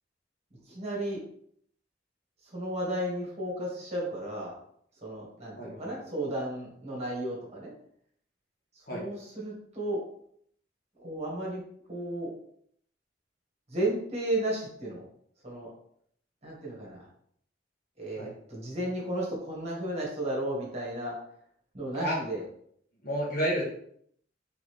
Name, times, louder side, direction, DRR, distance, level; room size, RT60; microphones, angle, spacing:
voice 1, 0.7-1.2 2.5-4.5 5.0-7.7 8.9-10.0 11.0-11.6 11.9-12.3 13.7-15.0 15.4-15.7 16.4-17.0 18.0-21.1 21.7-22.4, right 1 dB, 35° right, -4 dB, 1.6 m, -33 dB
voice 2, 5.6-6.0 8.9-9.0 18.2-18.3 21.9-22.2 23.0-23.6, equal, 55° left, -4 dB, 1.5 m, -31 dB
3.9 x 3.5 x 3.3 m, 0.67 s
head